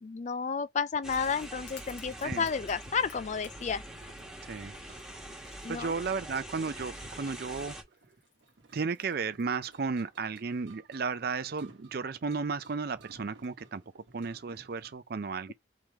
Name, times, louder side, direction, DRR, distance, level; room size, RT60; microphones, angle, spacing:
voice 1, 0.0-3.8 5.6-6.0, left 6 dB, 40° left, 0.4 m, -32 dB
sound 1, 1.0-7.8, right 1 dB, 5° right, 1.2 m, -44 dB
sound 2, 1.1-10.1, left 7 dB, 80° left, 1.3 m, -58 dB
sound 3, 3.9-14.9, right 3 dB, 80° right, 1.0 m, -59 dB
voice 2, 4.4-4.7 5.7-7.8 8.7-13.8 14.1-15.5, right 4 dB, 55° right, 0.5 m, -34 dB
3.7 x 3.2 x 4.4 m
head